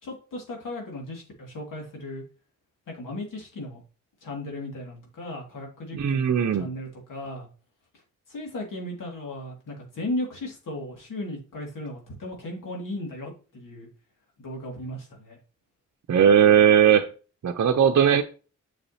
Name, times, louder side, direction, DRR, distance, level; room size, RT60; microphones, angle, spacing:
voice 1, 0.0-2.2 2.9-3.8 4.2-7.5 8.3-13.9 14.4-15.4, left 1 dB, 80° left, 2.3 m, -36 dB
voice 2, 5.9-6.7 16.1-17.1 17.4-18.2, right 8 dB, 60° right, 0.7 m, -18 dB
6.8 x 6.5 x 2.8 m
cardioid pair, 45°, 32 cm